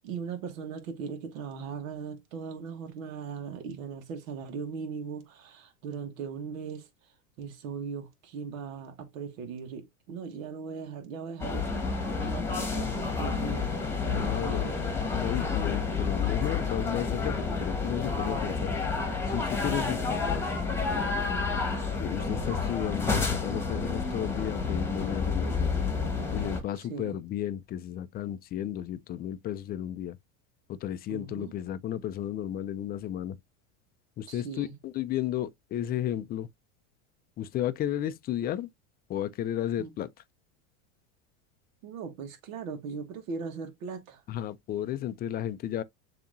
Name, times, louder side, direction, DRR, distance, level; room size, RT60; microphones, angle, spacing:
voice 1, 0.0-14.7 26.7-27.2 31.1-31.5 34.3-34.7 39.8-39.9 41.8-44.2, right 6 dB, 80° right, 1.4 m, -39 dB
sound 1, 11.4-26.6, left 4 dB, 5° left, 1.4 m, -30 dB
voice 2, 14.1-14.7 15.1-18.7 19.3-20.5 20.9-21.1 22.0-25.8 26.3-30.2 30.7-33.4 34.2-36.5 37.4-38.7 39.1-40.1 44.3-45.8, left 11 dB, 25° left, 0.3 m, -33 dB
7.0 x 2.9 x 2.6 m
supercardioid pair, 120°, 40 cm